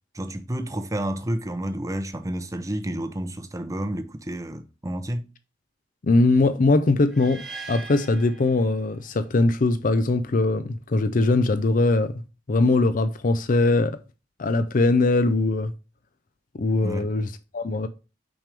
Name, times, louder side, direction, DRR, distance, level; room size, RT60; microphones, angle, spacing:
voice 1, 0.1-5.2 16.8-17.1, right 1 dB, 15° right, 0.7 m, -30 dB
voice 2, 6.0-12.2 12.5-14.0 14.4-15.7 16.5-17.9, left 2 dB, 45° left, 0.5 m, -21 dB
sound 1, 7.1-9.2, right 4 dB, ahead, 1.5 m, -41 dB
6.1 x 5.2 x 3.4 m
head